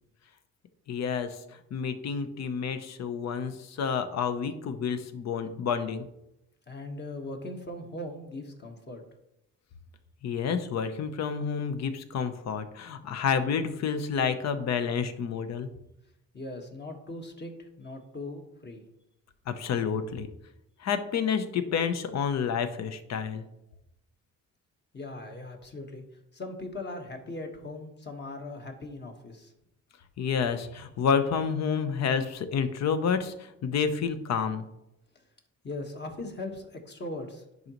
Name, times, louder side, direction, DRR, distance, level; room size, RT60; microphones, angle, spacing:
voice 1, 0.9-6.1 10.2-15.7 19.5-20.3 20.8-23.4 30.2-34.7, left 6 dB, 60° left, 10 dB, 0.8 m, -29 dB
voice 2, 6.7-9.0 16.3-18.8 24.9-26.0 26.3-29.5 35.6-37.7, left 2 dB, 35° left, 3 dB, 1.4 m, -39 dB
10.5 x 4.0 x 3.0 m, 0.85 s
cardioid pair, 90°, 30 cm